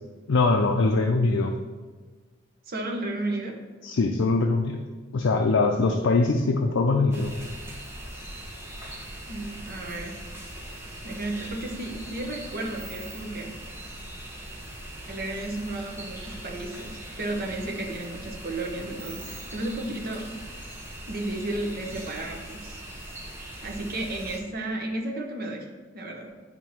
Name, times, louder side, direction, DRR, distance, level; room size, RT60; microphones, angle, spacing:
voice 1, 0.3-1.5 3.8-4.8 5.1-7.4, left 3 dB, 75° left, 3 dB, 0.5 m, -22 dB
voice 2, 2.7-3.6 9.3-10.2 10.6-13.6 15.1-20.3 21.1-22.8 23.6-25.7 25.9-26.3, right 2 dB, 50° right, 1 dB, 1.0 m, -33 dB
sound 1, 7.1-24.4, right 1 dB, 15° right, 1.0 m, -40 dB
10.5 x 3.6 x 2.9 m, 1.4 s
head